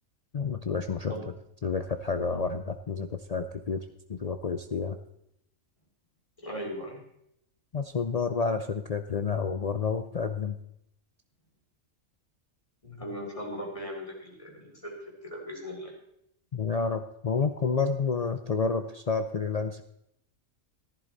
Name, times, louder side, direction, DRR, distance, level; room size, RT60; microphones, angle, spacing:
voice 1, 0.3-1.1 1.6-3.8 4.1-5.0 7.7-10.6 16.5-19.8, left 5 dB, 50° left, 7 dB, 0.4 m, -29 dB
voice 2, 6.4-7.0 12.8-15.9, equal, 25° left, 0 dB, 3.1 m, -38 dB
14.0 x 11.0 x 4.1 m, 0.76 s
omnidirectional pair, 1.4 m